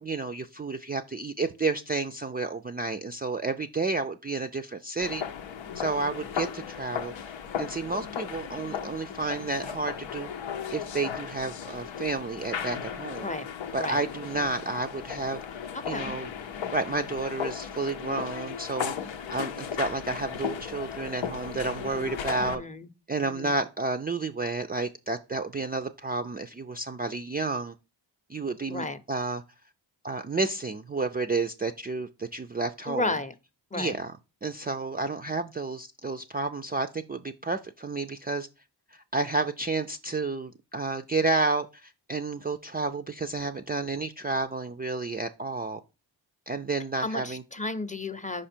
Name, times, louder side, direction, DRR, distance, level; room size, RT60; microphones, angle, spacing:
voice 1, 0.0-5.2 5.8-7.1 7.6-10.3 10.7-13.3 13.7-15.4 15.8-16.3 16.7-18.9 19.3-22.6 23.1-27.7 28.3-29.4 30.0-33.1 33.7-34.1 34.4-38.5 38.9-45.8 46.5-47.4, right 3 dB, 20° right, 0.4 m, -31 dB
sound 1, 5.0-22.5, left 8 dB, 85° left, 0.7 m, -36 dB
voice 2, 15.7-16.2 22.4-22.9 23.2-23.6 28.7-29.0 32.9-33.3 33.7-33.9 47.0-48.5, left 2 dB, 15° left, 0.7 m, -33 dB
5.0 x 5.0 x 4.4 m
cardioid pair, 45°, 45 cm